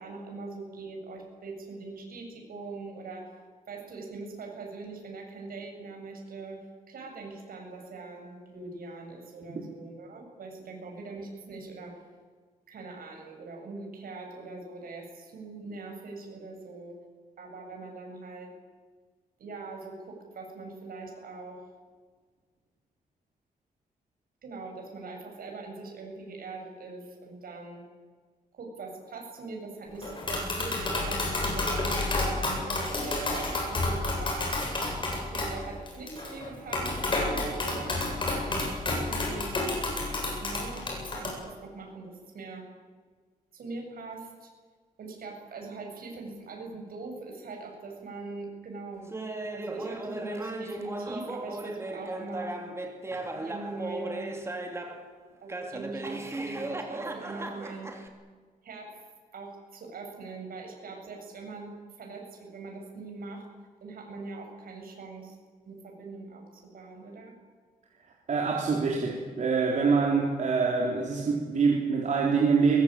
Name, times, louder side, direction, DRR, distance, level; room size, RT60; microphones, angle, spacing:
voice 1, 0.0-3.3 3.7-6.6 6.9-11.9 12.7-17.0 17.4-18.5 19.4-21.6 24.4-27.8 28.5-34.6 35.2-39.6 40.4-42.6 43.5-44.5 45.0-49.1 49.5-52.5 53.4-54.3 55.4-57.9 58.6-58.9 59.3-63.4 63.8-65.4 65.6-67.3, right 3 dB, 70° right, 2 dB, 7.7 m, -42 dB
Tap, 30.0-41.3, left 2 dB, 30° left, 7.9 m, -30 dB
Laughter, 49.1-55.1 55.5-58.1, right 2 dB, 15° right, 3.1 m, -36 dB
voice 2, 68.3-72.8, right 5 dB, 50° right, -2 dB, 4.1 m, -25 dB
23.0 x 22.0 x 9.2 m, 1.5 s
wide cardioid pair, 165°, 15 cm